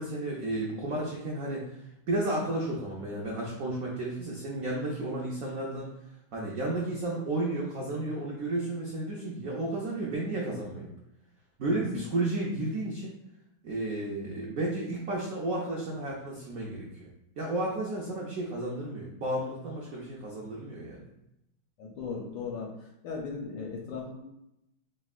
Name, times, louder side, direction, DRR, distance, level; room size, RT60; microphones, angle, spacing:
voice 1, 0.0-5.9 6.3-10.9 11.6-13.2 13.6-17.1 17.4-21.0, right 2 dB, 85° right, -3 dB, 0.7 m, -32 dB
voice 2, 21.8-22.7 23.0-24.2, left 5 dB, 70° left, -1 dB, 1.2 m, -37 dB
5.2 x 3.1 x 2.4 m, 0.85 s
omnidirectional pair, 2.4 m